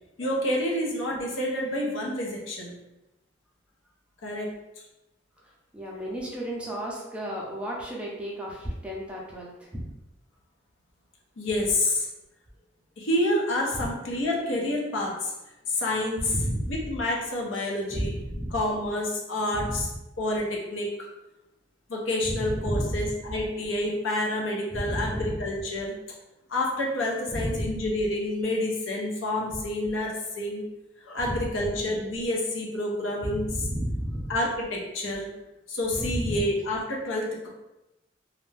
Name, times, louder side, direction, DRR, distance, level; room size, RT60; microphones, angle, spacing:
voice 1, 0.2-2.7 4.2-4.5 11.4-12.1 13.0-15.3 15.7-16.3 16.7-18.1 18.5-19.9 20.2-20.9 21.9-25.9 26.5-30.6 31.0-33.6 34.3-35.3 35.7-37.5, left 1 dB, 85° left, -2 dB, 0.7 m, -28 dB
voice 2, 5.7-9.8 13.8-13.9 16.3-16.8 17.9-18.5 19.5-19.8 22.3-23.1 24.7-25.3 27.3-27.8 31.2-31.4 33.2-34.3 36.0-36.4, equal, 5° right, -4 dB, 0.4 m, -32 dB
2.5 x 2.1 x 3.2 m, 0.98 s
head